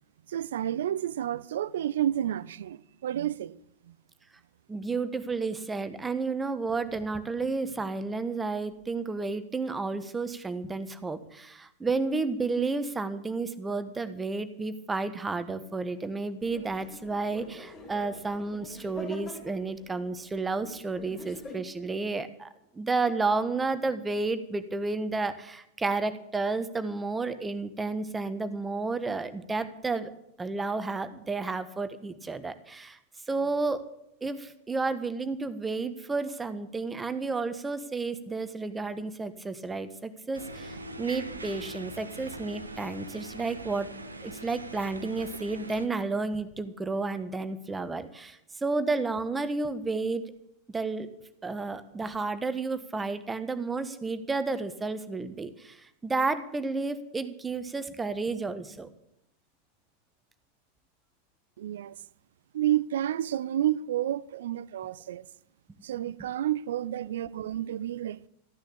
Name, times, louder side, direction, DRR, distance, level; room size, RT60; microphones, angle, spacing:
voice 1, 0.3-3.6 3.9-4.0 61.6-62.0 62.5-65.3 65.8-68.3, right 12 dB, 60° right, 0.6 m, -30 dB
voice 2, 4.7-22.5 22.7-30.1 30.4-33.0 33.3-33.9 34.2-43.9 44.2-50.2 50.7-51.1 51.4-58.9 66.2-66.3, right 3 dB, 10° right, 1.3 m, -31 dB
sound 1, 16.4-21.5, left 2 dB, 30° left, 6.9 m, -46 dB
sound 2, 40.3-45.9, right 1 dB, 80° right, 1.4 m, -42 dB
14.5 x 10.5 x 8.6 m
figure-of-eight pair, 90°, 0 cm